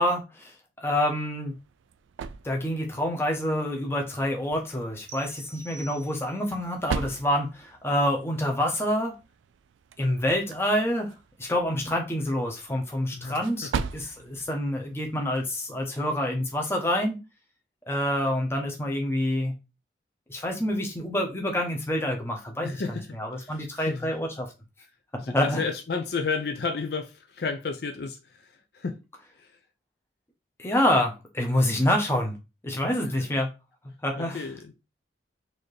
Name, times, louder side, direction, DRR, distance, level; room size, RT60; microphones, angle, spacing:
voice 1, 0.0-1.5 2.4-9.1 10.0-11.1 11.4-17.2 17.9-19.5 20.3-22.8 23.1-24.5 25.3-25.6 30.6-32.4 32.6-33.5 34.0-34.4, left 1 dB, 15° left, 0.8 m, -27 dB
sound 1, 1.3-15.8, right 6 dB, 90° right, 0.3 m, -40 dB
sound 2, 5.1-6.6, right 3 dB, 50° right, 0.6 m, -47 dB
voice 2, 13.1-13.7 22.6-24.1 25.2-29.0 29.4-29.5 32.8-33.1 34.2-34.7, left 4 dB, 60° left, 0.5 m, -32 dB
4.2 x 2.7 x 3.2 m
head